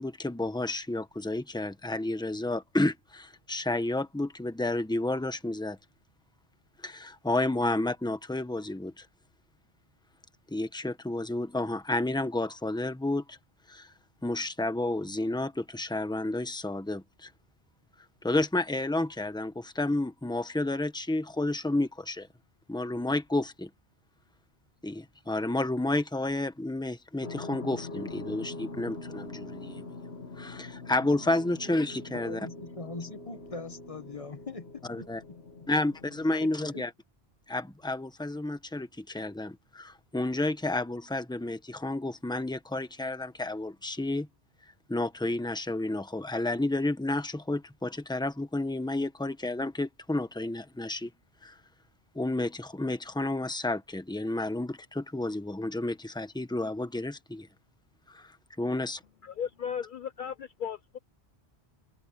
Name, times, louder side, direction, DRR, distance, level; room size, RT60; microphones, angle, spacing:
voice 1, 0.0-5.8 6.8-9.1 10.5-13.4 13.7-13.9 14.2-17.3 18.2-22.3 22.7-23.7 24.8-29.8 30.4-32.5 34.9-35.2 35.7-36.9 37.5-44.3 44.9-51.1 51.4-51.5 52.1-57.5 58.6-59.0, left 2 dB, 5° left, 1.1 m, -31 dB
sound 1, 27.2-36.4, left 2 dB, 85° left, 1.8 m, -43 dB
voice 2, 32.1-35.4 36.3-36.9, left 3 dB, 35° left, 1.1 m, -42 dB
voice 3, 59.2-61.0, left 8 dB, 60° left, 0.7 m, -36 dB
omnidirectional pair, 1.0 m